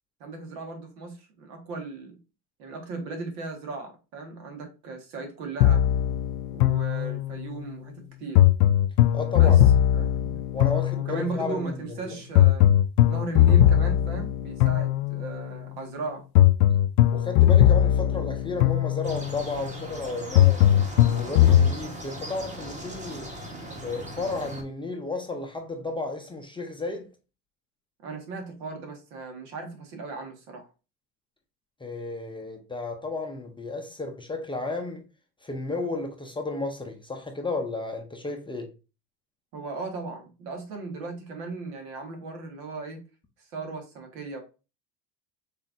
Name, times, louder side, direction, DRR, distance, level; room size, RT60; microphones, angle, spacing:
voice 1, 0.2-2.2 2.6-5.8 6.5-8.4 9.4-9.6 9.9-10.4 10.9-12.6 13.1-16.2 28.0-30.7 39.5-43.0 43.4-44.4, right 3 dB, 75° right, 1.7 m, -37 dB
sound 1, 5.6-7.5 8.4-11.4 12.4-15.4 16.4-19.4 20.4-21.7, left 12 dB, 75° left, 0.5 m, -20 dB
voice 2, 9.1-9.6 10.5-12.2 17.1-20.7 21.2-23.3 23.8-27.1 31.8-35.0 35.4-38.7, left 3 dB, 10° left, 0.5 m, -33 dB
sound 2, 19.0-24.6, right 1 dB, 15° right, 1.1 m, -39 dB
5.8 x 3.4 x 2.5 m
supercardioid pair, 120°, 44 cm